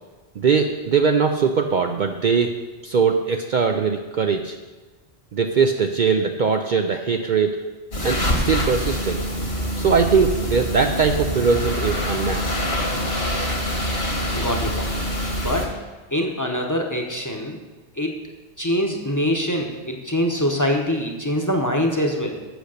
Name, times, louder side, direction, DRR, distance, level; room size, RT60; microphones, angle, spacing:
voice 1, 0.4-2.5 2.8-4.6 5.3-7.6 8.0-9.2 9.8-12.5, right 5 dB, 55° right, 4 dB, 0.6 m, -21 dB
sound 1, 7.9-15.7, equal, 65° left, 2.0 m, -25 dB
voice 2, 14.3-15.0 15.4-15.7 16.1-17.6 18.0-18.2 18.6-22.4, equal, 20° left, 1 dB, 0.9 m, -24 dB
8.0 x 6.5 x 6.4 m, 1.2 s
omnidirectional pair, 1.1 m